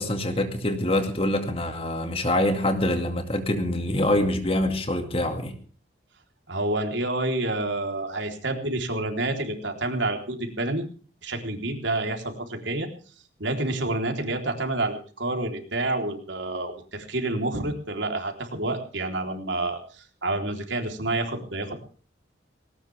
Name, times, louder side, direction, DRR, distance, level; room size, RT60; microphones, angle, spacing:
voice 1, 0.0-5.5, left 1 dB, 30° left, 7 dB, 2.3 m, -25 dB
voice 2, 6.5-10.8 11.2-12.9 13.4-21.8, right 2 dB, 75° right, 4 dB, 3.8 m, -28 dB
19.0 x 18.5 x 3.5 m, 0.41 s
head